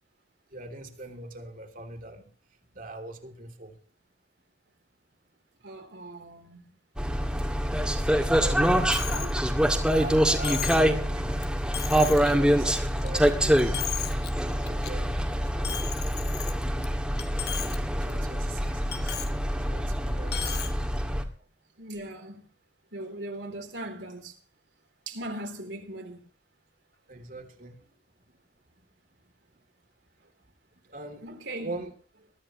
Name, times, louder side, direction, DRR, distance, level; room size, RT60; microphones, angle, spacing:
voice 1, 0.5-2.3 2.7-3.8 8.4-8.9 9.9-11.2 11.9-13.9 14.6-15.9 18.0-19.3 19.5-20.7 27.1-27.8 30.9-31.9, right 2 dB, 50° right, 2.9 m, -41 dB
voice 2, 5.6-6.7 9.0-9.4 19.3-19.5 21.8-22.5 22.9-24.4 25.1-26.2 31.2-31.7, right 1 dB, 75° right, 3.5 m, -39 dB
sound 1, 7.0-21.2, equal, 5° right, 2.0 m, -25 dB
Coin (dropping), 8.9-9.3 9.7-9.8 10.4-10.9 11.4-11.5 11.7-12.3 12.8-13.3 13.6-14.3 14.7-14.9 15.6-16.9 17.2-17.8 18.1-18.2 18.9-19.3 20.3-20.7, left 11 dB, 60° left, 1.5 m, -35 dB
23.0 x 13.5 x 3.0 m
head